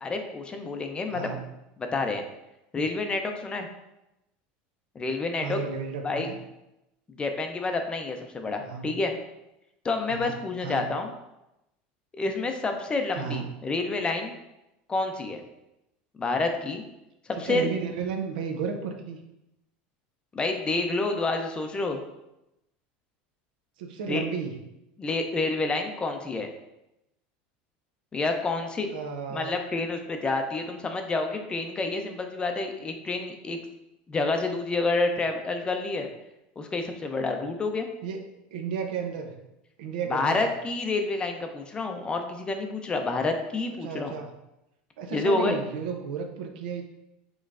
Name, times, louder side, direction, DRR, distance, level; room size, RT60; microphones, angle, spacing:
voice 1, 0.0-1.3 1.9-2.2 2.7-3.7 5.0-5.6 6.0-6.3 7.2-9.1 9.8-11.1 12.1-14.3 14.9-15.4 16.2-16.8 17.3-17.7 20.3-22.0 24.1-24.3 25.0-26.5 28.1-28.9 29.3-33.6 34.1-36.1 36.6-37.9 40.1-44.1 45.1-45.6, left 3 dB, 20° left, 5 dB, 0.5 m, -28 dB
voice 2, 1.1-1.5 5.4-6.4 8.6-9.0 10.1-10.4 10.6-10.9 13.1-13.5 17.4-19.2 23.8-24.6 28.9-29.5 38.0-38.2 38.5-39.4 39.8-40.4 43.8-44.3 45.0-46.8, right 6 dB, 85° right, 4 dB, 0.6 m, -33 dB
5.3 x 3.1 x 2.5 m, 0.90 s
supercardioid pair, 120°, 5 cm